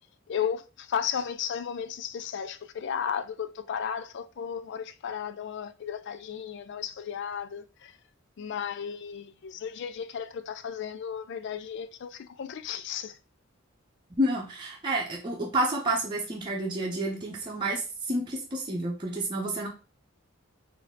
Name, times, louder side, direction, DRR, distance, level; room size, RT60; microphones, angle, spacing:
voice 1, 0.3-7.9 8.4-13.2, left 8 dB, 60° left, 0.4 m, -34 dB
voice 2, 14.2-19.7, right 1 dB, 25° right, 0.8 m, -29 dB
4.2 x 2.7 x 3.7 m
head